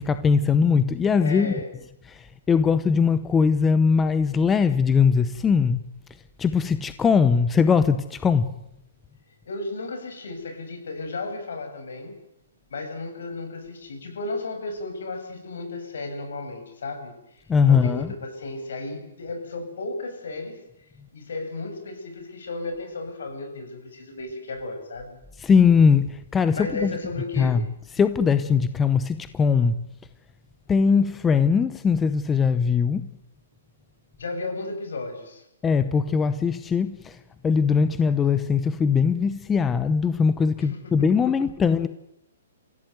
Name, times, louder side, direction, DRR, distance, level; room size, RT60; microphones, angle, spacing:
voice 1, 0.0-1.5 2.1-5.9 6.4-8.5 17.5-18.1 25.4-26.9 27.4-27.6 27.9-29.9 30.7-33.1 35.6-37.2 37.4-41.9, left 6 dB, 10° left, 0.8 m, -21 dB
voice 2, 1.2-1.7 9.5-12.1 12.7-20.5 21.1-25.2 26.5-27.6 34.2-35.4 40.6-41.1, left 2 dB, 75° left, 7.6 m, -34 dB
25.5 x 16.0 x 9.3 m
hypercardioid pair, 165°, 0 cm